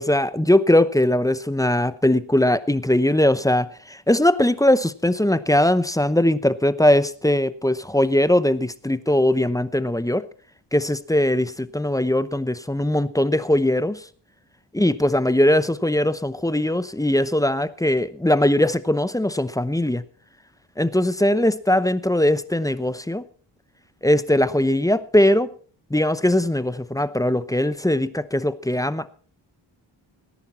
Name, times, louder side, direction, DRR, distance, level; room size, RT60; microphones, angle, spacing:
voice 1, 0.0-10.2 10.7-14.0 14.7-20.0 20.8-23.2 24.0-25.5 25.9-29.1, left 1 dB, 5° left, 15 dB, 0.8 m, -20 dB
18.0 x 10.5 x 4.3 m, 0.43 s
cardioid pair, 65°, 46 cm